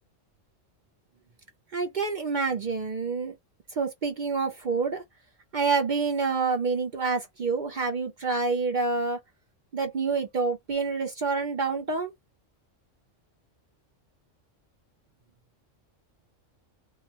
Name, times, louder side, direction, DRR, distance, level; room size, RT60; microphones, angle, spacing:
voice 1, 1.7-3.3 3.8-5.0 5.5-9.2 9.7-12.1, right 4 dB, 55° right, 0.5 m, -27 dB
2.3 x 2.2 x 2.7 m
omnidirectional pair, 1.3 m